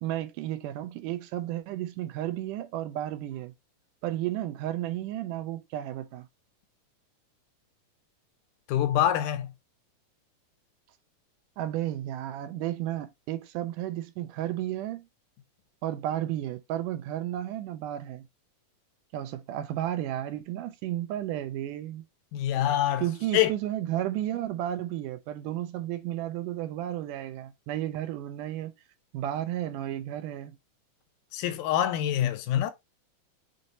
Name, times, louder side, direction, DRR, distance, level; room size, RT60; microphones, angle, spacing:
voice 1, 0.0-3.5 4.0-6.3 11.6-15.0 15.8-18.3 19.1-22.0 23.0-28.7 29.1-30.6, right 13 dB, 90° right, 2.2 m, -33 dB
voice 2, 8.7-9.5 22.3-23.0 23.3-23.5 31.3-32.7, left 11 dB, 85° left, 2.2 m, -25 dB
6.3 x 2.9 x 2.7 m
omnidirectional pair, 3.7 m